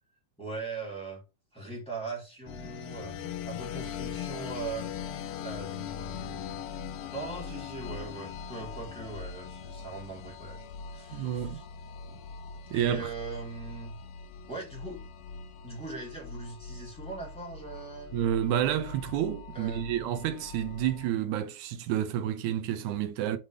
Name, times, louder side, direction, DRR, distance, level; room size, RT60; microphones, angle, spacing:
voice 1, 0.4-1.2 1.5-3.1 3.5-4.9 5.4-6.6 7.1-10.7 10.9-11.6 12.1-12.2 12.7-14.0 14.5-15.0 15.6-18.1 19.5-20.2, right 3 dB, ahead, 3.1 m, -40 dB
sound 1, 2.5-21.1, left 7 dB, 80° left, 1.3 m, -41 dB
voice 2, 11.1-11.6 12.7-13.1 18.1-23.4, right 10 dB, 85° right, 2.1 m, -29 dB
5.7 x 5.2 x 3.3 m
omnidirectional pair, 3.3 m